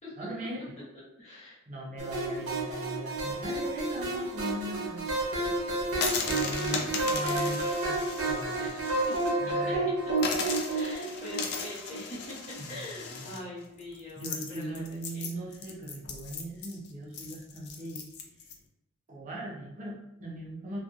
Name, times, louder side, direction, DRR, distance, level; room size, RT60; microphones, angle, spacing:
voice 1, 0.2-0.6 1.7-5.0 6.3-9.0 9.4-9.9 10.3-10.4 12.6-13.5 14.2-18.0 19.1-20.8, right 1 dB, 35° right, -3 dB, 0.5 m, -39 dB
voice 2, 1.2-1.6 5.4-6.1 6.8-7.5 8.6-9.4 10.7-15.3, left 1 dB, 35° left, -7 dB, 0.8 m, -44 dB
sound 1, 2.0-12.6, right 2 dB, 85° right, 0.8 m, -31 dB
sound 2, 5.9-9.3 9.7-9.8 10.2-18.5, left 5 dB, 50° left, 0.4 m, -37 dB
2.5 x 2.3 x 2.4 m, 0.84 s
head